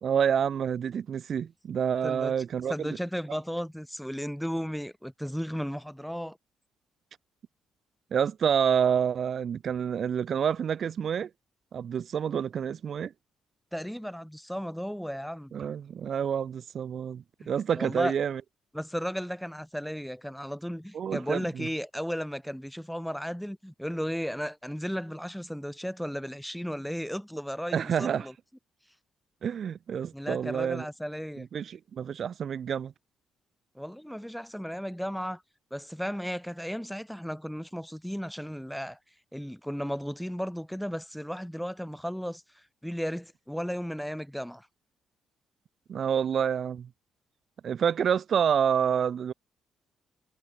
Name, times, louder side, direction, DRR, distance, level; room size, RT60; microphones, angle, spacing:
voice 1, 0.0-2.9 8.1-11.3 11.7-13.1 15.5-18.4 20.9-21.7 27.7-28.3 29.4-30.8 31.4-32.9 45.9-46.9 47.6-49.3, right 8 dB, 55° right, 1.1 m, -28 dB
voice 2, 2.7-6.4 13.7-15.5 17.8-18.1 18.7-28.3 30.1-31.5 33.7-35.4 35.7-39.0 39.3-44.7, equal, ahead, 2.5 m, -35 dB
cardioid pair, 90°, 0 cm